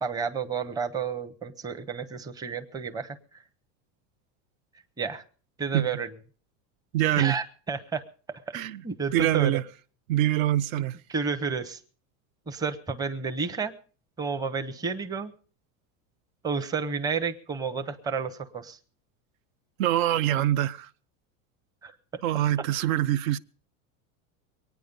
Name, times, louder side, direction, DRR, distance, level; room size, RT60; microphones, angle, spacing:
voice 1, 0.0-3.2 5.0-5.2 5.6-6.1 7.2-8.0 8.5-8.6 8.8-9.6 10.8-10.9 11.1-11.8 12.5-13.7 14.2-15.3 16.4-18.8 21.8-21.9, right 5 dB, 10° right, 0.7 m, -31 dB
voice 2, 6.9-7.4 8.5-8.8 9.1-9.6 10.1-11.0 19.8-20.9 22.2-23.4, right 13 dB, 75° right, 0.7 m, -24 dB
23.0 x 9.3 x 5.2 m
supercardioid pair, 150°, 42 cm